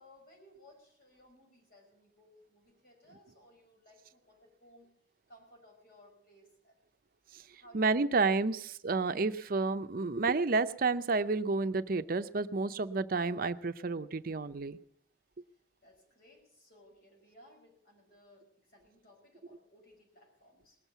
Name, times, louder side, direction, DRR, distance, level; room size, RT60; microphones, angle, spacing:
voice 1, 0.0-4.9 5.3-6.8 7.5-8.2 8.5-8.6 15.8-20.8, left 1 dB, 60° left, 0 dB, 5.7 m, -60 dB
voice 2, 7.7-14.8, right 3 dB, 55° right, 11 dB, 0.6 m, -30 dB
19.5 x 7.4 x 8.1 m, 0.68 s
head